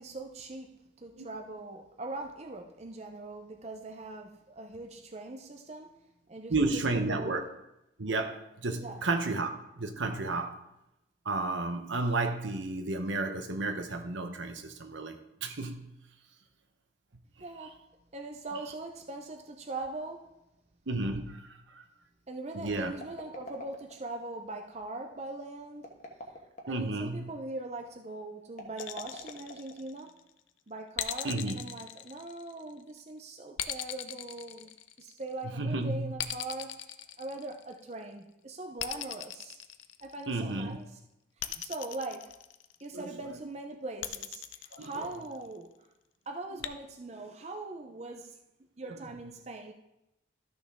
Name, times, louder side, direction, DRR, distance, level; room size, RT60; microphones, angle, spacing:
voice 1, 0.0-5.9 6.3-7.4 8.8-9.0 17.4-17.8 18.1-20.3 22.3-25.9 26.6-30.1 30.7-36.8 37.2-39.6 40.0-40.9 41.4-42.3 42.8-44.4 44.8-45.9 46.3-48.4 48.8-49.7, right 2 dB, 35° right, 0.7 m, -41 dB
voice 2, 6.5-7.4 8.0-9.5 9.8-10.6 11.2-15.9 20.9-21.8 22.5-22.9 26.7-27.3 31.2-31.6 35.4-36.1 40.3-40.8 42.9-43.4 44.7-45.1 48.8-49.2, right 2 dB, 80° right, 1.0 m, -32 dB
sound 1, 22.8-24.2 25.7-26.9 28.5-30.0, equal, 40° left, 1.3 m, -45 dB
sound 2, 28.8-30.2 31.0-32.8 33.6-35.3 36.2-37.9 38.8-40.4 41.4-42.9 44.0-45.5 46.6-46.7, left 12 dB, 90° left, 0.6 m, -39 dB
13.0 x 6.1 x 3.6 m
head